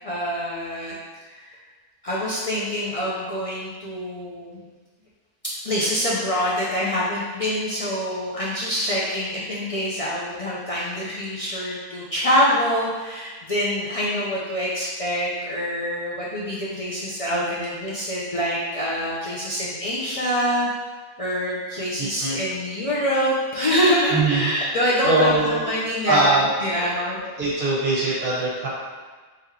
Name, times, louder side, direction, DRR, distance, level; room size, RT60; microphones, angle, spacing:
voice 1, 0.0-1.0 1.3-1.5 2.0-4.6 5.4-20.7 21.2-27.2, equal, 45° left, -7 dB, 0.6 m, -25 dB
voice 2, 22.0-22.4 24.1-24.5 25.0-25.7 26.1-26.5 27.4-28.7, right 2 dB, 55° right, -6 dB, 1.3 m, -21 dB
3.7 x 3.3 x 3.1 m, 1.3 s
omnidirectional pair, 1.1 m